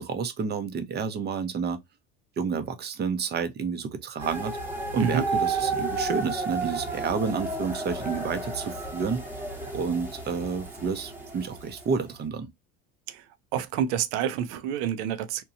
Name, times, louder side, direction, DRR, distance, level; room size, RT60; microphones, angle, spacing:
voice 1, 0.0-1.8 2.4-4.6 4.9-9.2 9.7-12.5, right 5 dB, 30° right, 0.6 m, -30 dB
sound 1, 4.2-12.0, right 3 dB, 5° right, 0.9 m, -32 dB
voice 2, 13.5-15.4, right 9 dB, 70° right, 0.6 m, -28 dB
2.9 x 2.2 x 2.5 m
supercardioid pair, 105°, 37 cm